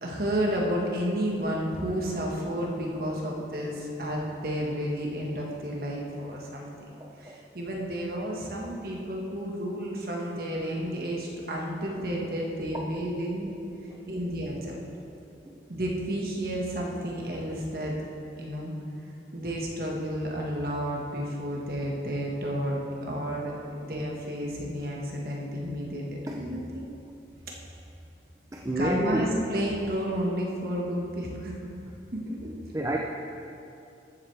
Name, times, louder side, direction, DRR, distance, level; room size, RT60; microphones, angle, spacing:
voice 1, 0.0-13.5 14.1-14.8 15.7-17.9 18.4-18.7 19.3-22.8 23.1-23.5 23.8-26.0 26.3-26.9 28.8-31.6 32.1-32.5, equal, 55° right, -2 dB, 1.5 m, -31 dB
voice 2, 7.0-7.4 12.7-13.1 13.9-14.0 15.5-15.6 23.7-23.8 26.3-26.5 28.5-29.3 32.7-33.0, right 1 dB, 15° right, 0 dB, 0.5 m, -30 dB
13.5 x 7.9 x 3.4 m, 2.6 s
head